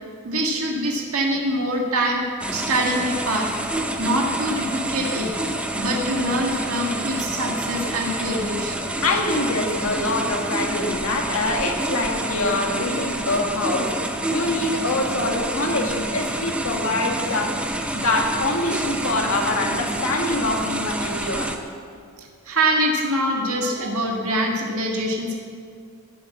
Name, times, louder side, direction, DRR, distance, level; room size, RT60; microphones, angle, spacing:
voice 1, 0.2-2.2 2.5-3.5 4.0-5.3 5.8-8.8 22.2-25.4, right 1 dB, 75° right, 0 dB, 1.8 m, -24 dB
sound 1, 2.4-21.6, right 1 dB, 5° right, 0.7 m, -28 dB
voice 2, 9.0-13.9 14.3-17.6 17.9-21.5, left 2 dB, 70° left, 1 dB, 1.8 m, -24 dB
17.0 x 7.9 x 7.3 m, 2.2 s
head